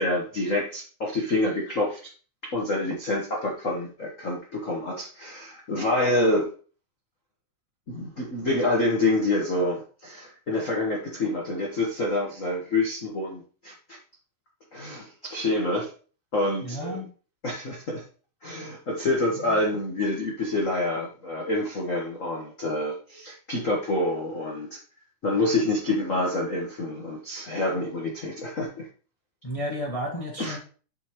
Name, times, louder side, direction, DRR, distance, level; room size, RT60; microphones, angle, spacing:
voice 1, 0.0-2.1 2.5-6.5 7.9-14.0 14.7-15.9 16.3-17.0 17.4-18.0 18.4-24.8 25.2-28.9 30.4-30.6, left 2 dB, 85° left, -1 dB, 0.7 m, -27 dB
voice 2, 16.6-17.1 19.4-19.6 29.4-30.6, equal, 40° left, -2 dB, 0.4 m, -32 dB
7.9 x 5.5 x 3.0 m, 0.39 s
omnidirectional pair, 3.6 m